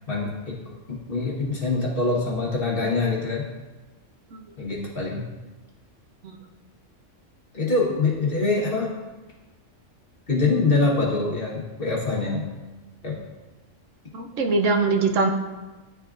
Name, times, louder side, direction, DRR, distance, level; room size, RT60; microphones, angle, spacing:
voice 1, 0.1-0.5 0.9-3.4 4.6-5.2 7.5-8.9 10.3-12.5 13.0-13.2, left 3 dB, 50° left, -5 dB, 1.5 m, -24 dB
voice 2, 14.1-15.3, right 3 dB, 80° right, 3 dB, 1.0 m, -22 dB
10.5 x 3.7 x 2.4 m, 1.2 s
omnidirectional pair, 1.3 m